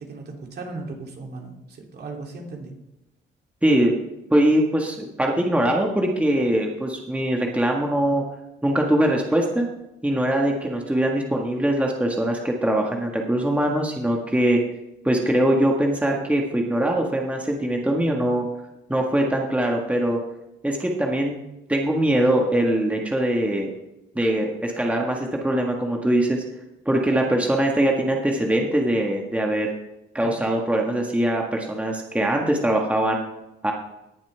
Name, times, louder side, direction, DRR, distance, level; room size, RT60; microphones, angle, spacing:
voice 1, 0.0-2.8 19.1-19.5 30.2-30.5, right 3 dB, 55° right, 0 dB, 2.9 m, -37 dB
voice 2, 3.6-3.9 4.3-8.2 8.6-9.7 10.0-14.6 15.0-18.5 18.9-20.2 20.6-21.4 21.7-23.7 24.2-26.4 26.9-29.7 30.1-33.2 33.6-33.7, right 1 dB, 5° right, 0 dB, 1.6 m, -22 dB
18.5 x 7.3 x 3.4 m, 0.94 s
cardioid pair, 90°, 20 cm